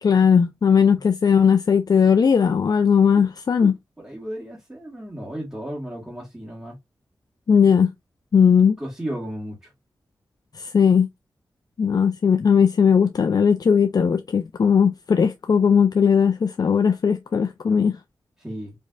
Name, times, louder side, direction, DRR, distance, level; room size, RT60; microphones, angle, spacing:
voice 1, 0.0-3.7 7.5-7.9 8.3-8.8 10.6-11.1 11.8-18.0, left 6 dB, 55° left, 0.4 m, -18 dB
voice 2, 3.6-6.8 8.8-9.7 18.4-18.7, right 1 dB, 15° right, 1.9 m, -34 dB
4.2 x 3.2 x 2.4 m
cardioid pair, 60°, 8 cm